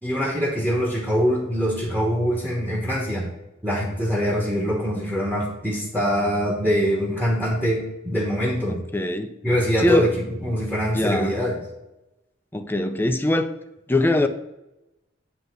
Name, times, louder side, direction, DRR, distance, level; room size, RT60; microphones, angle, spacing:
voice 1, 0.0-3.3 3.6-8.8 9.4-10.1 10.4-11.6, equal, 10° right, -2 dB, 1.2 m, -23 dB
voice 2, 8.9-9.3 9.8-10.1 10.9-11.4 12.5-13.5 13.9-14.3, left 1 dB, 10° left, 7 dB, 0.5 m, -22 dB
9.6 x 3.4 x 6.6 m, 0.93 s
head